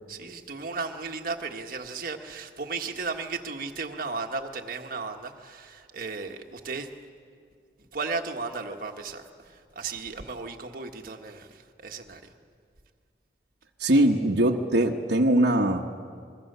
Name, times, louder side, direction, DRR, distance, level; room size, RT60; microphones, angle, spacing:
voice 1, 0.1-6.9 7.8-12.3, right 4 dB, 55° right, 3 dB, 1.6 m, -35 dB
voice 2, 13.8-15.9, right 1 dB, 70° right, 0 dB, 1.2 m, -21 dB
27.0 x 22.5 x 6.8 m, 2.2 s
head